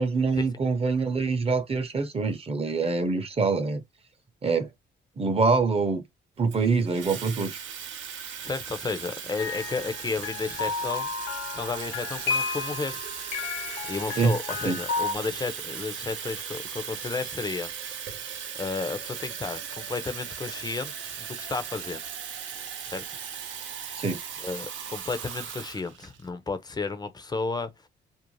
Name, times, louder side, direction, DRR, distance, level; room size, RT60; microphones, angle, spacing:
voice 1, 0.0-3.8 4.4-4.7 5.2-6.0 6.4-7.6 14.2-14.3 14.6-14.8 24.0-24.2, right 4 dB, 30° right, 0.7 m, -25 dB
Water tap faucet / Fill (with liquid), 6.5-26.3, right 7 dB, 75° right, 0.7 m, -38 dB
voice 2, 8.4-11.1 11.5-13.0 13.9-17.7 18.6-22.0 22.9-23.0 24.4-27.7, left 4 dB, 20° left, 0.5 m, -32 dB
sound 1, 9.4-15.1, left 5 dB, 85° left, 0.5 m, -32 dB
2.5 x 2.0 x 3.0 m
cardioid pair, 90°, 20 cm